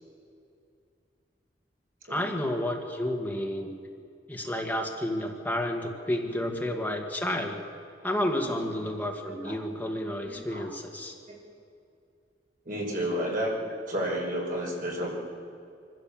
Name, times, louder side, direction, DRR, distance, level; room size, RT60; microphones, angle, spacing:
voice 1, 2.1-3.8 4.3-7.6 8.0-11.2, left 1 dB, 10° left, 1 dB, 1.8 m, -31 dB
voice 2, 10.2-10.6 11.3-11.4 12.7-13.5 13.9-15.1, equal, 50° right, -2 dB, 5.4 m, -31 dB
24.5 x 15.5 x 7.4 m, 2.4 s
head